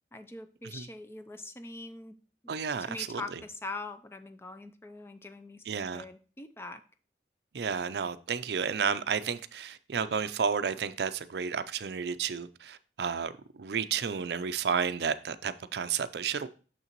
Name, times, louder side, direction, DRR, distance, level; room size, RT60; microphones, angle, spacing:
voice 1, 0.1-2.2 2.8-6.8, left 2 dB, 15° left, 0.4 m, -43 dB
voice 2, 2.5-3.2 5.7-6.0 7.5-16.5, right 6 dB, 70° right, 0.4 m, -32 dB
6.6 x 6.5 x 2.9 m
head